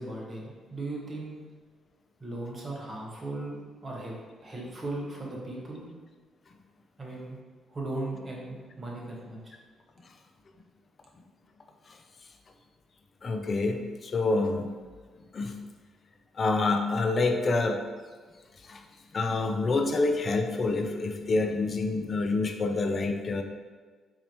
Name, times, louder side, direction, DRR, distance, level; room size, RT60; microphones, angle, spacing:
voice 1, 0.0-1.4 2.2-4.1 4.4-5.8 7.0-7.4 7.7-9.5, right 2 dB, 35° right, -3 dB, 1.1 m, -37 dB
voice 2, 13.2-14.7 15.3-15.6 16.3-17.8 18.6-18.8 19.1-23.4, left 3 dB, 45° left, 5 dB, 0.4 m, -27 dB
4.0 x 2.8 x 3.0 m, 1.5 s
supercardioid pair, 55°, 0 cm